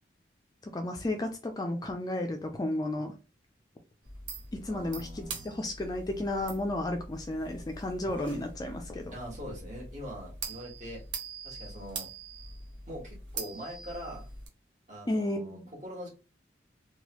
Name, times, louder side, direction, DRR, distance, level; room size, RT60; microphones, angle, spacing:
voice 1, 0.7-3.1 4.5-9.2 15.1-15.6, left 1 dB, 20° left, 0.3 m, -33 dB
sound 1, 4.0-14.5, right 3 dB, 85° right, 0.8 m, -43 dB
voice 2, 4.7-5.6 9.1-11.0 11.4-12.1 12.9-14.3 14.9-16.1, equal, 40° right, 1.5 m, -43 dB
3.1 x 2.2 x 2.9 m
head